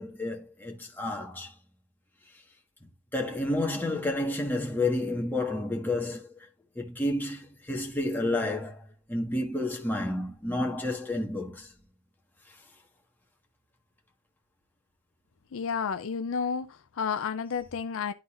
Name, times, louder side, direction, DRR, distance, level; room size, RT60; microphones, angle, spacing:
voice 1, 0.0-1.5 2.8-6.5 6.7-11.7, left 2 dB, 10° left, 1.4 m, -30 dB
voice 2, 15.5-18.1, left 6 dB, 65° left, 0.5 m, -31 dB
11.5 x 4.0 x 2.5 m
head